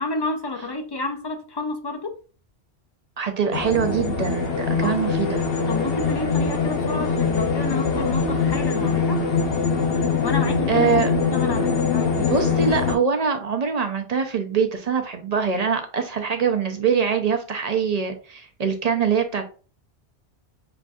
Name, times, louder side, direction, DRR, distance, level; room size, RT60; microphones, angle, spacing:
voice 1, 0.0-2.1 4.8-5.0 5.7-9.2 10.2-11.0 11.3-12.3, left 2 dB, 40° left, 0.3 m, -30 dB
voice 2, 3.2-5.5 10.7-11.1 12.2-19.5, right 6 dB, 50° right, 0.5 m, -23 dB
sound 1, 3.5-13.0, left 5 dB, 65° left, 0.8 m, -23 dB
5.8 x 2.5 x 2.3 m
omnidirectional pair, 1.1 m